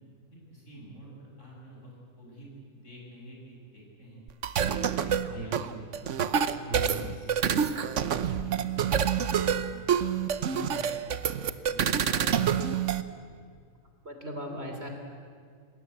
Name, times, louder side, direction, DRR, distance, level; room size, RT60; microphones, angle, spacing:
voice 1, 0.5-4.2 5.0-5.8 6.5-7.3 8.0-9.8 10.5-10.9 11.2-12.8 14.4-14.8, right 1 dB, 55° left, -3 dB, 8.3 m, -48 dB
sound 1, 4.3-13.0, right 8 dB, 60° right, 1.2 m, -27 dB
voice 2, 5.3-5.7 6.7-7.0 14.1-14.9, right 1 dB, 45° right, 3 dB, 3.4 m, -38 dB
28.0 x 20.0 x 8.5 m, 2.1 s
omnidirectional pair, 1.5 m